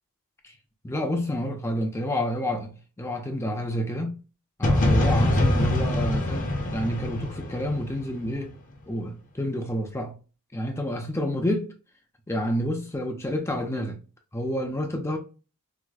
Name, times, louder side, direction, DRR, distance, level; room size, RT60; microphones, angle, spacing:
voice 1, 0.8-2.7 3.0-4.2 4.6-8.6 8.9-10.2 10.5-11.7 12.3-14.0 14.3-15.2, equal, 10° left, 0.5 m, -29 dB
sound 1, 4.6-8.5, left 1 dB, 35° left, 0.8 m, -24 dB
4.6 x 2.1 x 2.3 m
head